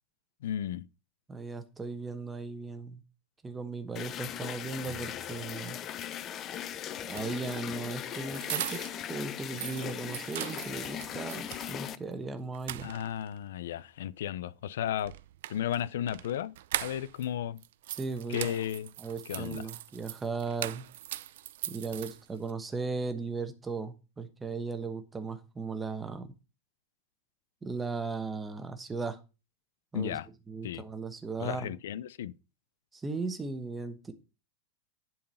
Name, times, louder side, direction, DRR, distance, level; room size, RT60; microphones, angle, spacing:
voice 1, 0.4-0.9 12.8-15.1 15.5-16.5 16.8-17.6 18.3-18.9 19.3-19.6 29.9-30.3 30.6-30.8 31.4-32.3, left 10 dB, 90° left, 0.6 m, -34 dB
voice 2, 1.3-3.0 3.4-5.8 7.1-12.9 18.0-18.6 19.0-20.8 21.7-26.3 27.6-29.2 29.9-30.2 30.5-31.7 32.9-34.1, right 4 dB, 10° right, 1.1 m, -37 dB
sound 1, 4.0-12.0, left 10 dB, 25° left, 0.6 m, -39 dB
sound 2, 7.0-9.1 9.4-11.7 12.1-12.2 12.5-13.4 15.0-17.3 17.6-22.5, right 14 dB, 70° right, 0.6 m, -40 dB
11.0 x 4.6 x 5.6 m
supercardioid pair, 165°, 0 cm